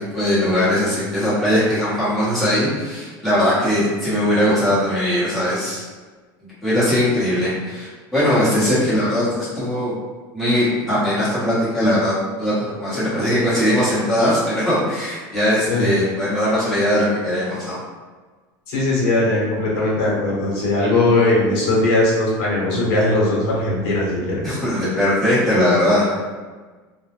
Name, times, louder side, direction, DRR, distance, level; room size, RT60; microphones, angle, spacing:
voice 1, 0.0-5.8 6.6-9.9 10.3-17.8 24.4-26.1, left 1 dB, ahead, -13 dB, 0.9 m, -20 dB
voice 2, 18.7-24.5, left 2 dB, 70° left, -4 dB, 0.8 m, -19 dB
2.2 x 2.0 x 3.0 m, 1.4 s
cardioid pair, 165°, 10 cm